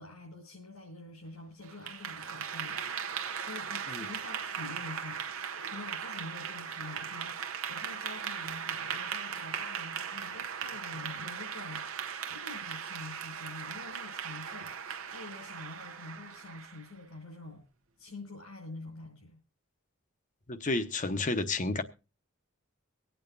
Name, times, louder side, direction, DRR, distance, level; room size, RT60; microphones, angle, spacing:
voice 1, 0.0-2.9 3.4-17.6 18.0-19.4, left 2 dB, 90° left, 5.2 m, -47 dB
Clapping / Applause, 1.6-16.9, right 7 dB, 75° right, 0.9 m, -38 dB
voice 2, 20.5-21.8, left 2 dB, 35° left, 0.9 m, -31 dB
23.5 x 8.9 x 2.6 m
head